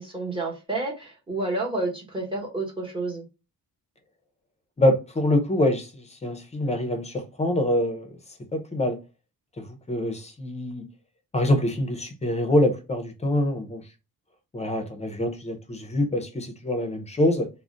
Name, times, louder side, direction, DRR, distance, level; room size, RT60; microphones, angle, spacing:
voice 1, 0.0-3.3, right 2 dB, 15° right, 1.0 m, -30 dB
voice 2, 4.8-8.1 8.5-9.0 9.6-10.8 11.3-13.8 14.5-17.5, left 1 dB, 20° left, 0.5 m, -25 dB
2.4 x 2.1 x 3.7 m
wide cardioid pair, 135°, 37 cm